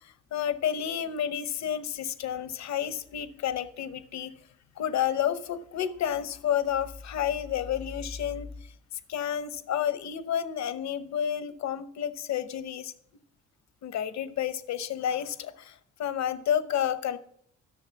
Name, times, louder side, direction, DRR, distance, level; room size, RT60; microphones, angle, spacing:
voice 1, 0.0-4.3 4.8-8.5 8.9-12.9 13.8-17.2, left 9 dB, 65° left, 13 dB, 0.9 m, -30 dB
12.0 x 6.5 x 5.7 m, 0.65 s
cardioid pair, 90°, 30 cm